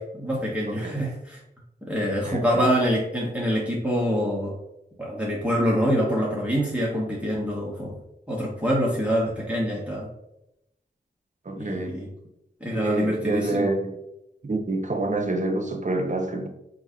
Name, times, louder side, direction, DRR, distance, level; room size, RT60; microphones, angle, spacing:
voice 1, 0.0-1.4 1.8-4.6 5.0-8.0 8.3-10.1 11.6-12.1 12.6-13.7, equal, 5° right, -5 dB, 1.1 m, -25 dB
voice 2, 0.7-1.0 2.2-2.7 11.5-12.0 12.7-14.0 14.4-16.5, right 2 dB, 45° right, 4 dB, 0.8 m, -27 dB
4.6 x 2.7 x 3.6 m, 0.87 s
wide cardioid pair, 70°, 18 cm